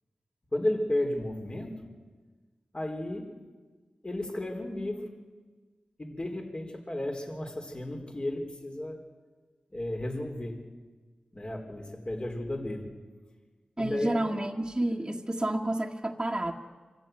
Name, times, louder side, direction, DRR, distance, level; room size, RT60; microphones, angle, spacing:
voice 1, 0.5-1.9 2.7-3.3 4.0-5.1 6.0-9.0 9.7-10.6 11.3-12.9 13.8-14.1, left 1 dB, 35° left, 3 dB, 4.0 m, -33 dB
voice 2, 13.8-16.5, right 1 dB, 25° right, -2 dB, 1.8 m, -30 dB
25.5 x 13.5 x 9.3 m, 1.4 s
cardioid pair, 40°, 3 cm